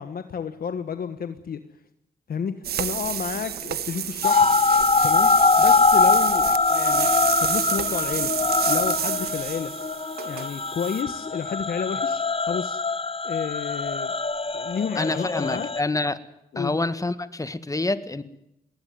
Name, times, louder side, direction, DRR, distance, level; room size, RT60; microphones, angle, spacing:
voice 1, 0.0-1.6 2.3-4.6 5.0-7.1 7.4-8.3 8.7-9.7 10.2-12.8 13.2-14.1 14.5-15.7 16.5-16.7, left 7 dB, 70° left, 9 dB, 1.4 m, -31 dB
sound 1, 2.6-11.0, right 9 dB, 85° right, 1.4 m, -30 dB
sound 2, 4.2-15.8, left 4 dB, 35° left, 1.1 m, -23 dB
voice 2, 15.0-16.2 16.6-18.2, left 2 dB, 20° left, 12 dB, 1.7 m, -27 dB
20.0 x 19.0 x 9.5 m, 0.85 s
cardioid pair, 55°, 16 cm